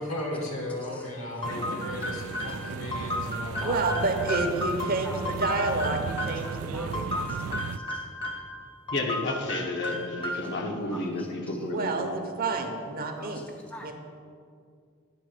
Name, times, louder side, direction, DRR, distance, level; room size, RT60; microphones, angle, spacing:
voice 1, 0.0-4.0, left 1 dB, 75° left, 0 dB, 1.8 m, -35 dB
sound 1, 1.4-6.5 6.9-8.5 8.9-10.6, left 1 dB, 25° left, 0.8 m, -34 dB
sound 2, 1.4-7.8, right 6 dB, 85° right, 0.3 m, -36 dB
voice 2, 1.5-1.9 8.9-12.1, left 2 dB, 60° left, 2 dB, 1.0 m, -32 dB
voice 3, 2.0-2.8 3.5-3.9 5.0-5.2 6.7-7.4 7.7-8.0 9.9-10.0 10.9-11.6 13.2-13.9, left 1 dB, 5° left, 1 dB, 0.5 m, -45 dB
voice 4, 3.6-7.0 11.7-13.4 13.8-13.9, right 3 dB, 45° right, 4 dB, 0.8 m, -29 dB
9.4 x 3.7 x 6.5 m, 2.2 s
head